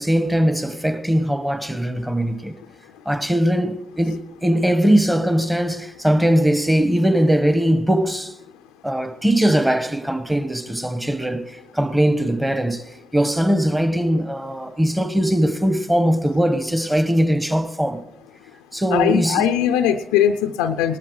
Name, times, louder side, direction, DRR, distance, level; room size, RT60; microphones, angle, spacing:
voice 1, 0.0-2.5 3.0-8.3 8.8-12.8 13.1-18.0 18.7-19.4, equal, 10° right, 1.2 m, -20 dB
voice 2, 18.9-21.0, left 9 dB, 85° left, 0.4 m, -20 dB
18.0 x 13.0 x 3.2 m
hypercardioid pair, 50°, 0 cm